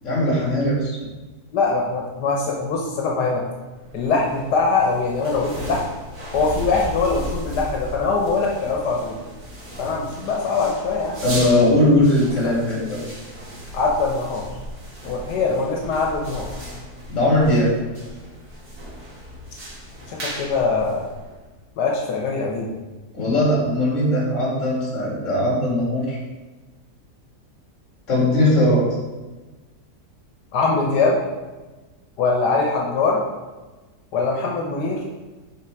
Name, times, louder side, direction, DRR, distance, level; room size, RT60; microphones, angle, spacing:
voice 1, 0.0-1.1 11.2-13.0 17.1-17.7 23.1-26.2 28.1-28.8, left 1 dB, 50° left, -4 dB, 2.4 m, -19 dB
voice 2, 1.5-3.4 3.9-5.8 6.3-9.2 9.8-11.2 12.4-12.5 13.7-14.5 15.0-16.5 20.1-21.1 21.8-22.7 30.5-31.2 32.2-33.2 34.1-35.0, left 4 dB, 90° left, -1 dB, 1.5 m, -22 dB
sound 1, 3.7-21.6, equal, 65° right, 2.3 m, -36 dB
5.8 x 4.5 x 4.6 m, 1.2 s
omnidirectional pair, 1.7 m